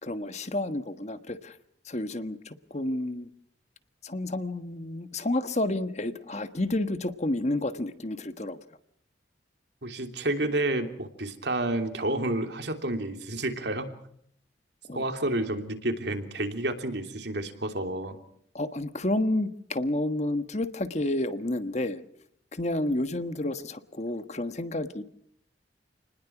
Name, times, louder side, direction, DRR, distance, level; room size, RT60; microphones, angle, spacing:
voice 1, 0.0-1.6 1.8-3.3 4.0-8.6 14.9-15.1 18.5-22.0 22.5-25.0, left 1 dB, 40° left, 10 dB, 1.4 m, -30 dB
voice 2, 9.8-13.9 14.9-18.2, right 1 dB, 65° right, 6 dB, 3.2 m, -30 dB
29.0 x 20.0 x 6.0 m, 0.68 s
head